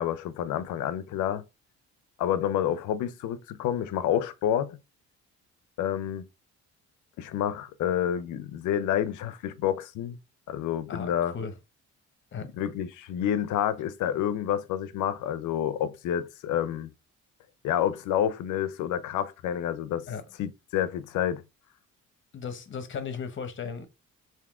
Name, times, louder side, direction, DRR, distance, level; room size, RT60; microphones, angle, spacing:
voice 1, 0.0-1.4 2.2-4.8 5.8-6.2 7.2-10.2 10.5-11.3 12.4-16.9 17.6-20.0 20.4-21.4, left 10 dB, 80° left, 0.5 m, -29 dB
voice 2, 10.9-11.5 12.3-12.5 20.1-20.2 22.3-23.9, left 6 dB, 40° left, 0.8 m, -36 dB
3.5 x 2.7 x 3.5 m
cardioid pair, 90°, 30 cm